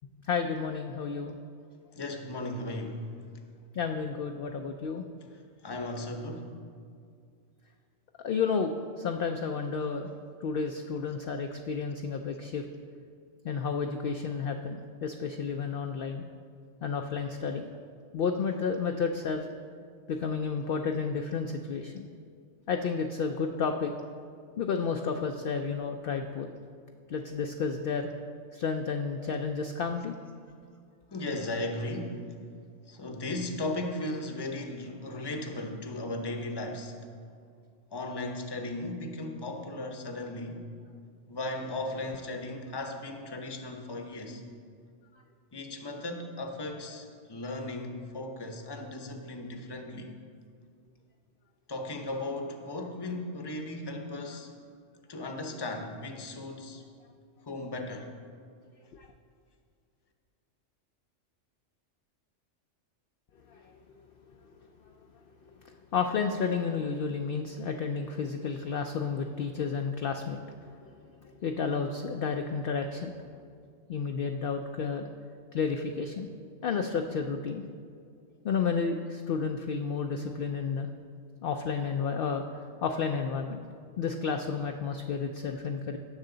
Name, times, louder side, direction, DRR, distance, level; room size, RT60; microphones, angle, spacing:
voice 1, 0.3-1.4 3.7-5.0 8.2-10.1 10.4-12.7 13.4-16.2 16.8-17.7 18.1-19.5 20.1-22.1 22.7-23.9 24.6-26.5 27.1-28.1 28.5-30.1 45.1-45.2 58.9-59.1 63.5-63.7 65.6-70.4 70.8-70.9 71.2-73.2 73.9-75.1 75.5-76.3 76.6-77.6 78.4-80.9 81.4-82.4 82.8-83.6 84.0-86.0, left 5 dB, 60° left, 4 dB, 0.6 m, -31 dB
voice 2, 1.9-3.0 5.6-6.6 31.1-32.4 32.9-37.0 37.9-40.7 41.3-44.4 45.5-50.1 51.7-54.5 55.1-56.8 57.5-58.1, left 2 dB, 25° left, 4 dB, 0.7 m, -36 dB
17.5 x 6.5 x 3.9 m, 2.2 s
omnidirectional pair, 1.3 m